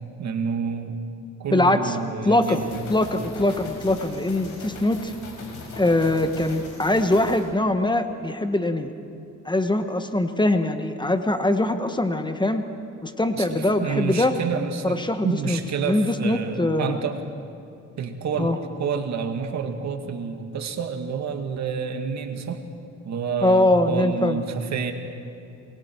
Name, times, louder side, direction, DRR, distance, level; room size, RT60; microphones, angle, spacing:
voice 1, 0.2-1.0 1.4-2.7 13.4-17.2 18.0-22.6 23.1-24.9, right 6 dB, 65° right, 6 dB, 2.1 m, -29 dB
voice 2, 1.5-2.0 2.2-5.1 5.8-8.9 9.4-12.6 13.0-14.3 14.8-15.6 15.8-17.0 18.4-18.6 23.4-24.4, left 1 dB, 15° left, 8 dB, 1.3 m, -22 dB
sound 1, 2.4-7.4, left 3 dB, 80° left, 6.2 m, -39 dB
29.0 x 22.5 x 4.7 m, 2.6 s
cardioid pair, 90°, 30 cm